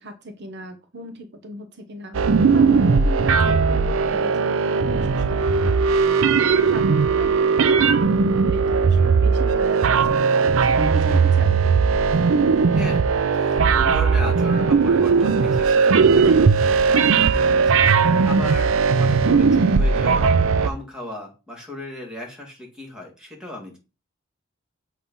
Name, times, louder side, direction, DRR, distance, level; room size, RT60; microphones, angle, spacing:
voice 1, 0.0-6.1 6.4-11.6, right 2 dB, 55° right, 7 dB, 0.9 m, -36 dB
sound 1, 2.1-20.7, right 5 dB, 75° right, 0.5 m, -18 dB
voice 2, 13.3-23.8, left 1 dB, 5° right, -1 dB, 2.0 m, -36 dB
7.1 x 3.1 x 5.3 m, 0.31 s
head